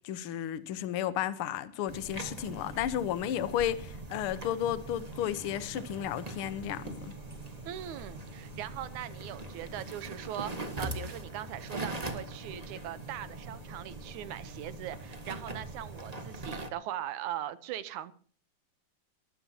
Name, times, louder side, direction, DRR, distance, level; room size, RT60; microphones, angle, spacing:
voice 1, 0.0-7.1, left 11 dB, 60° left, 1.5 m, -33 dB
sound 1, 1.9-16.7, right 2 dB, 30° right, 0.7 m, -42 dB
voice 2, 7.7-18.1, right 12 dB, 75° right, 2.3 m, -40 dB
22.5 x 14.5 x 2.9 m
omnidirectional pair, 3.6 m